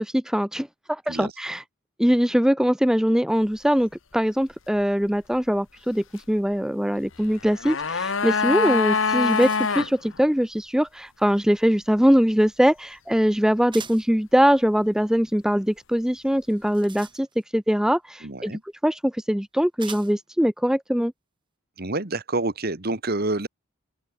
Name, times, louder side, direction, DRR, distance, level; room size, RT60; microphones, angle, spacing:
voice 1, 0.0-1.6 2.0-17.3 17.5-21.1, equal, 5° right, 0.6 m, -22 dB
sound 1, 7.3-9.9 10.2-10.3, left 5 dB, 60° left, 1.3 m, -24 dB
sound 2, 9.1-10.0 13.7-14.2 16.4-17.6 18.7-18.8 19.8-20.3, right 6 dB, 20° right, 5.4 m, -43 dB
voice 2, 18.2-18.6 21.8-23.5, right 2 dB, 45° right, 1.8 m, -27 dB
open air
head